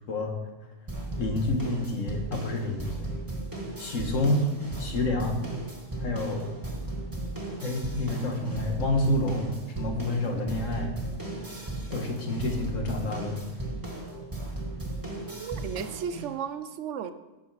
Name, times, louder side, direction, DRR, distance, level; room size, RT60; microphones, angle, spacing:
sound 1, 0.9-16.2, right 2 dB, 15° right, 1.5 m, -36 dB
voice 1, 1.2-3.1 3.8-4.5 4.8-5.4 6.0-6.4 7.6-10.9 11.9-13.4, left 1 dB, 80° left, 3 dB, 1.7 m, -28 dB
voice 2, 15.3-17.1, right 8 dB, 75° right, 11 dB, 0.9 m, -34 dB
10.5 x 6.5 x 4.8 m, 1.1 s
omnidirectional pair, 1.3 m